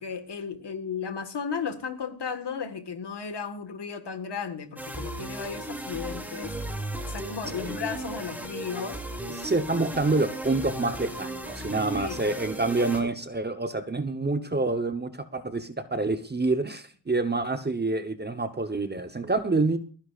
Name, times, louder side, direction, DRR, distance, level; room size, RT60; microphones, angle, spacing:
voice 1, 0.0-6.5 7.0-9.0 11.9-12.2, left 6 dB, 60° left, 9 dB, 1.7 m, -34 dB
sound 1, 4.8-13.0, right 1 dB, 5° right, 2.5 m, -36 dB
voice 2, 9.4-19.8, right 3 dB, 20° right, 9 dB, 0.9 m, -27 dB
29.0 x 10.0 x 2.4 m, 0.39 s
wide cardioid pair, 105°, 45 cm